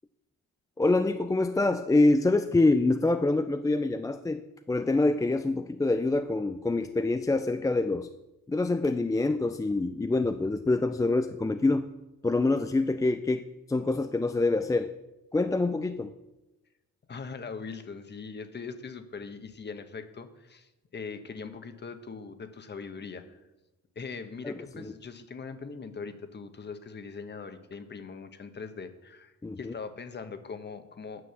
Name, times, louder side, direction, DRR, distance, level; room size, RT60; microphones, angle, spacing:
voice 1, 0.8-8.1 8.5-11.9 12.2-14.9 15.3-16.1 24.4-24.9 29.4-29.7, left 2 dB, 10° left, 8 dB, 0.4 m, -26 dB
voice 2, 17.1-23.4 23.9-31.2, left 5 dB, 35° left, 9 dB, 1.1 m, -41 dB
9.5 x 6.3 x 7.0 m, 1.0 s
cardioid pair, 90°, 30 cm